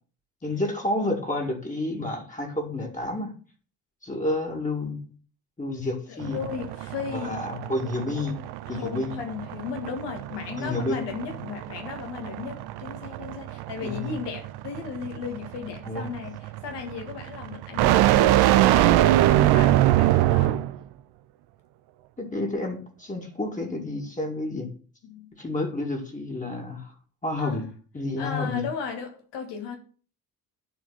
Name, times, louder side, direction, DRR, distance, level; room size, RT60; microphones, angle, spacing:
voice 1, 0.4-3.3 4.0-5.1 5.6-6.4 7.1-8.4 8.7-9.1 10.6-11.0 13.8-14.1 15.8-16.1 22.2-24.7 25.4-26.9 27.2-27.6 27.9-28.6, left 2 dB, 15° left, 2.1 m, -30 dB
voice 2, 6.1-7.4 8.7-20.6 25.0-25.3 27.4-27.7 28.2-29.8, left 6 dB, 55° left, 1.6 m, -36 dB
sound 1, 6.2-20.8, right 14 dB, 50° right, 0.6 m, -23 dB
10.5 x 4.4 x 4.0 m
figure-of-eight pair, 45°, 50 cm